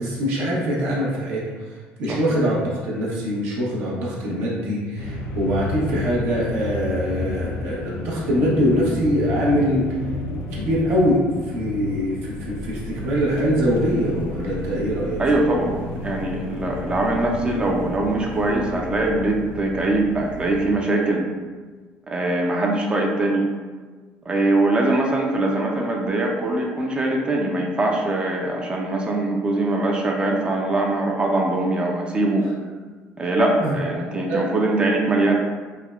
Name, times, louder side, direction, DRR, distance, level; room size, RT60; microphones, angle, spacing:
voice 1, 0.0-1.4 2.0-9.9 10.5-15.7 33.6-33.7 34.3-34.4, equal, 70° right, -6 dB, 0.7 m, -23 dB
sound 1, 5.0-20.7, left 3 dB, 85° left, 0.3 m, -32 dB
voice 2, 15.2-15.7 16.0-21.2 22.1-23.5 24.3-32.4 33.2-35.4, right 2 dB, 25° right, 0 dB, 0.4 m, -22 dB
3.4 x 2.0 x 2.3 m, 1.4 s
cardioid pair, 105°, 4 cm